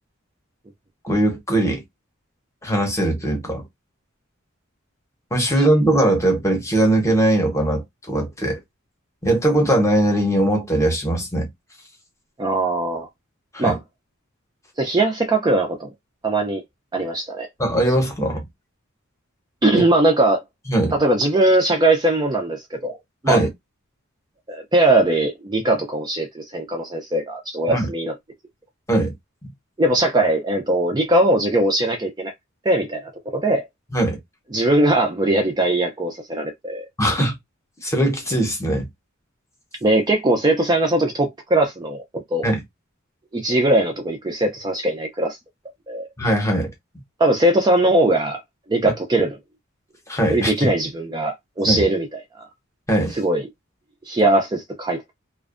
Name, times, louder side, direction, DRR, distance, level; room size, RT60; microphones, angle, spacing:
voice 1, 1.0-1.8 2.6-3.7 5.3-8.6 9.2-11.5 13.5-13.8 17.6-18.4 19.7-19.8 20.7-20.9 23.3-23.5 27.7-27.9 28.9-29.1 33.9-34.2 37.0-37.4 37.8-38.9 42.4-42.6 46.2-46.7 50.1-50.7 51.6-51.8 52.9-53.2, right 1 dB, 15° left, 0.8 m, -20 dB
voice 2, 12.4-13.1 13.6-13.8 14.8-15.9 16.2-16.6 16.9-17.5 19.6-20.4 21.0-23.0 23.2-23.4 24.5-28.1 29.8-32.3 32.7-33.7 34.5-36.8 39.8-42.5 43.3-45.4 45.9-46.1 47.2-48.4 48.7-49.4 50.3-52.1 52.4-52.5 53.2-53.4 54.1-55.0, right 1 dB, 20° right, 0.4 m, -20 dB
2.5 x 2.2 x 2.4 m
head